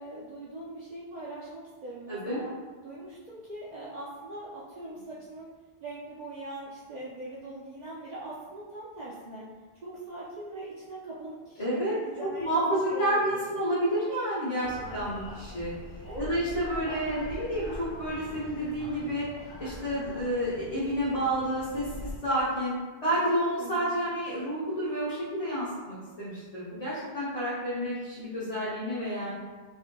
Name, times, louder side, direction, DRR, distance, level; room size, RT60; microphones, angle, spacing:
voice 1, 0.0-2.5 2.8-5.5 5.8-9.5 9.7-13.4 16.0-17.4 23.6-23.9, right 2 dB, 55° right, -7 dB, 0.5 m, -41 dB
voice 2, 2.1-2.4 11.6-11.9 12.4-15.7 16.2-19.3 19.6-29.3, equal, 40° left, -11 dB, 0.9 m, -30 dB
sound 1, 14.6-22.2, left 1 dB, 60° left, 0.7 m, -43 dB
4.3 x 2.5 x 2.2 m, 1.4 s
omnidirectional pair, 1.0 m